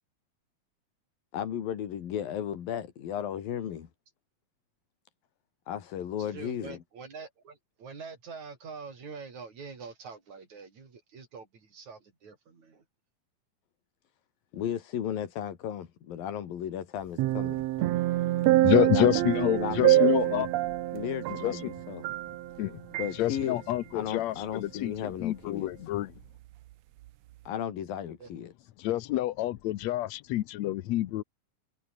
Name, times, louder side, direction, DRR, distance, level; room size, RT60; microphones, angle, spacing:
voice 1, 1.3-3.9 5.7-6.8 14.5-17.7 18.9-19.2 19.5-20.5 20.9-22.1 23.0-23.6 23.9-25.7 27.5-28.5, left 9 dB, 85° left, 4.0 m, -35 dB
voice 2, 6.2-12.8 28.2-28.3, right 5 dB, 55° right, 6.0 m, -45 dB
sound 1, 17.2-22.6 22.9-23.1, right 16 dB, 85° right, 1.5 m, -26 dB
voice 3, 18.1-20.5 21.4-21.7 22.6-22.8 23.1-26.1 28.8-31.2, left 14 dB, 70° left, 1.8 m, -28 dB
omnidirectional pair, 4.0 m